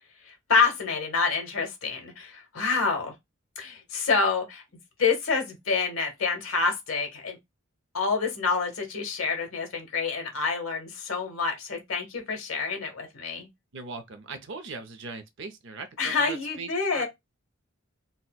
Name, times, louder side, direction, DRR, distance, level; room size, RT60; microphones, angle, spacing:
voice 1, 0.3-3.1 3.6-4.6 5.0-7.4 7.9-13.5 16.0-17.1, left 4 dB, 80° left, 1.1 m, -27 dB
voice 2, 13.7-17.1, right 4 dB, 60° right, 0.6 m, -40 dB
4.1 x 2.1 x 2.3 m
head